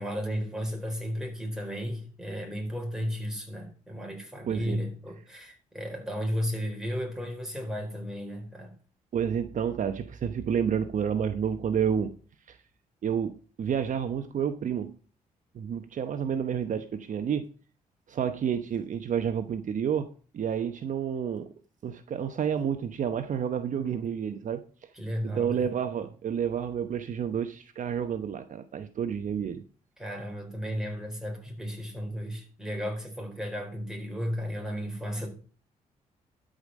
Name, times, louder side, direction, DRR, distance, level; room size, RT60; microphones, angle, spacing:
voice 1, 0.0-8.7 24.9-25.7 30.0-35.3, equal, 5° right, 4.4 m, -34 dB
voice 2, 4.5-4.8 9.1-12.1 12.5-12.6 13.0-14.9 15.5-17.5 18.1-21.5 21.8-24.6 25.3-29.6, right 8 dB, 60° right, 0.9 m, -30 dB
12.5 x 5.2 x 6.4 m
cardioid pair, 80°, 15 cm